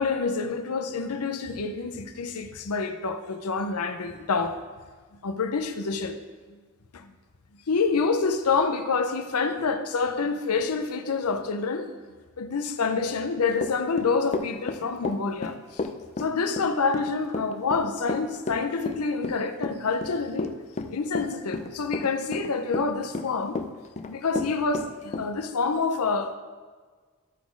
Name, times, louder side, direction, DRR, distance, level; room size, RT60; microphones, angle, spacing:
voice 1, 0.0-4.6 5.2-6.2 6.5-6.6 6.9-7.1 7.7-11.9 12.4-15.8 16.2-20.5 20.9-23.6 24.1-26.3, left 4 dB, 85° left, 0.7 m, -27 dB
Run / Walk footsteps, 13.6-25.3, left 3 dB, 30° left, 0.4 m, -32 dB
12.5 x 4.3 x 4.6 m
head